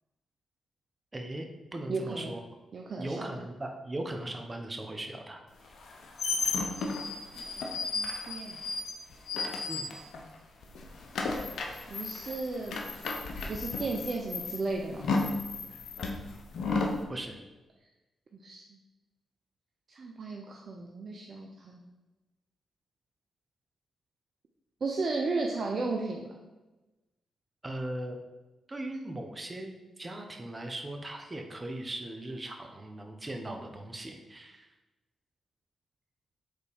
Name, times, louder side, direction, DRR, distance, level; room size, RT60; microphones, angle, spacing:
voice 1, 1.1-2.4 3.0-5.8 9.7-9.9 17.1-17.4 27.6-28.2 28.7-29.7 30.0-34.7, right 1 dB, 30° right, 4 dB, 1.1 m, -39 dB
voice 2, 1.9-2.3 2.7-3.3 7.0-8.6 11.9-12.7 13.5-15.1 18.3-18.6 19.9-21.9 24.8-26.2, right 3 dB, 55° right, 1 dB, 0.7 m, -35 dB
sound 1, 5.7-10.4 10.6-17.0, left 3 dB, 70° left, 0.9 m, -33 dB
5.2 x 4.1 x 5.4 m, 1.1 s
supercardioid pair, 45°, 0 cm